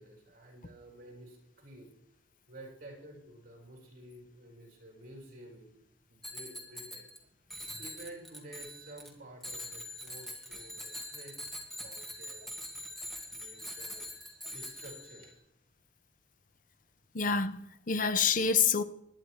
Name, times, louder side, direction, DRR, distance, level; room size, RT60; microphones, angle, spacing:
voice 1, 0.0-1.9 2.5-5.7 6.1-7.1 7.8-11.4 11.8-12.5 13.3-15.3, right 1 dB, 50° right, 5.1 m, -51 dB
Bicycle bell, 6.2-7.2 7.5-9.1 9.4-15.3, left 1 dB, ahead, 2.0 m, -43 dB
voice 2, 17.1-18.8, left 6 dB, 45° left, 0.8 m, -27 dB
21.5 x 10.0 x 3.2 m
head